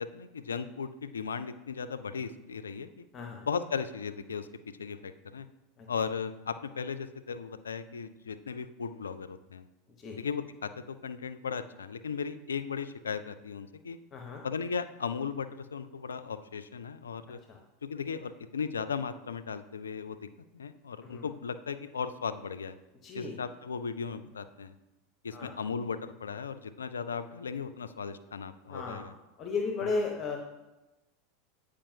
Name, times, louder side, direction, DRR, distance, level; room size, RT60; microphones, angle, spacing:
voice 1, 0.0-3.0 3.5-4.5 4.8-5.5 5.9-9.6 10.2-14.0 14.4-17.4 17.8-20.3 20.5-22.8 23.1-24.7 25.2-29.1, left 6 dB, 80° left, 11 dB, 0.3 m, -36 dB
voice 2, 3.1-3.5 5.8-5.9 10.0-10.2 14.1-14.4 17.5-17.6 21.0-21.2 23.0-23.4 25.3-25.5 28.7-29.1 29.4-30.4, left 4 dB, 35° left, 2 dB, 0.8 m, -35 dB
8.6 x 5.0 x 2.7 m, 1.0 s
figure-of-eight pair, 85°, 0 cm